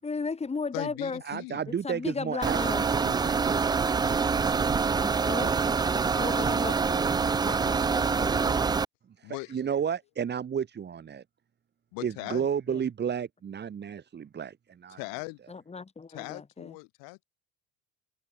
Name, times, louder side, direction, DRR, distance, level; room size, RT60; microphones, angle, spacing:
voice 1, 0.0-1.2 1.7-2.8 5.0-7.1 7.4-8.6 12.7-12.9 15.5-16.8, left 4 dB, 15° left, 6.9 m, -36 dB
voice 2, 0.7-1.6 9.2-9.6 11.9-12.5 14.9-15.4 16.1-17.2, left 33 dB, 70° left, 3.4 m, -39 dB
voice 3, 1.2-3.6 9.2-11.2 12.0-15.0, right 7 dB, 30° right, 3.3 m, -32 dB
pc vent, 2.4-8.8, right 5 dB, 10° right, 0.4 m, -25 dB
supercardioid pair, 120°, 35 cm